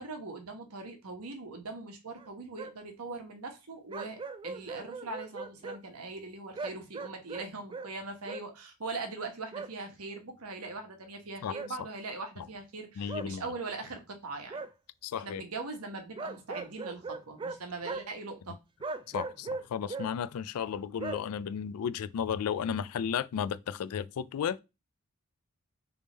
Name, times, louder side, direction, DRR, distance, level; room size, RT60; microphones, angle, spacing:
voice 1, 0.0-14.6 15.1-18.6, right 3 dB, 75° right, 1.1 m, -41 dB
sound 1, 2.2-2.3 2.6-2.7 3.9-5.8 6.6-7.9 8.3-8.4 9.5-9.7 11.5-11.7 13.1-13.3 14.5-14.7 16.2-17.6 17.8-18.0 18.8-20.1 21.0-21.2, right 3 dB, 20° right, 0.3 m, -38 dB
voice 2, 13.0-13.5 15.0-15.4 19.1-24.6, left 8 dB, 75° left, 0.3 m, -34 dB
3.4 x 3.4 x 4.1 m
head